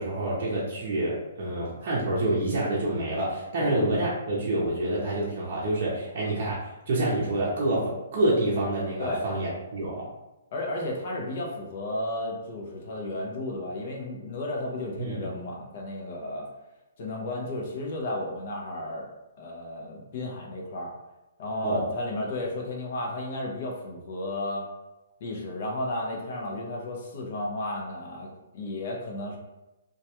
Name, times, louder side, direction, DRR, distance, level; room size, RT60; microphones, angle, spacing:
voice 1, 0.0-10.1 15.0-15.2 21.6-21.9, right 1 dB, 45° right, -6 dB, 0.6 m, -27 dB
voice 2, 10.5-16.5 17.0-19.1 19.4-20.9 21.4-24.7 25.2-29.4, left 1 dB, 45° left, -1 dB, 0.5 m, -33 dB
2.2 x 2.2 x 2.8 m, 0.97 s
hypercardioid pair, 165°, 0 cm